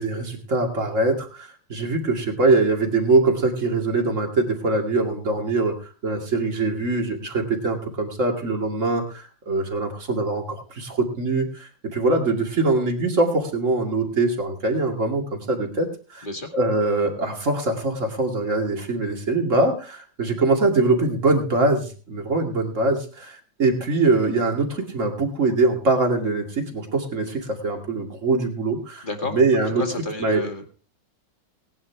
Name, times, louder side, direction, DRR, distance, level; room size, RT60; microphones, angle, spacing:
voice 1, 0.0-5.8 6.0-16.3 16.5-29.8 30.2-30.4, right 3 dB, 40° right, 2 dB, 2.6 m, -23 dB
voice 2, 29.0-29.3 29.8-30.7, left 2 dB, 25° left, 3 dB, 2.2 m, -30 dB
18.5 x 11.0 x 3.5 m, 0.38 s
omnidirectional pair, 2.0 m